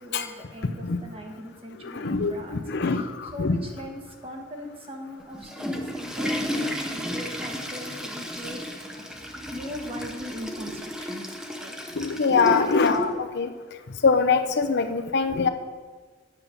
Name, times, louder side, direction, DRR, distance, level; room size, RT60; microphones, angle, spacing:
voice 1, 0.0-3.1 3.3-9.2 9.5-11.2 11.5-11.8 12.3-13.2, equal, 30° right, 2 dB, 1.3 m, -38 dB
voice 2, 1.8-3.6 11.9-13.1 13.4-13.5 13.9-15.5, left 5 dB, 60° left, 8 dB, 0.6 m, -23 dB
Water / Toilet flush, 5.2-13.0, equal, 5° right, 0.7 m, -33 dB
8.9 x 6.8 x 5.7 m, 1.5 s
head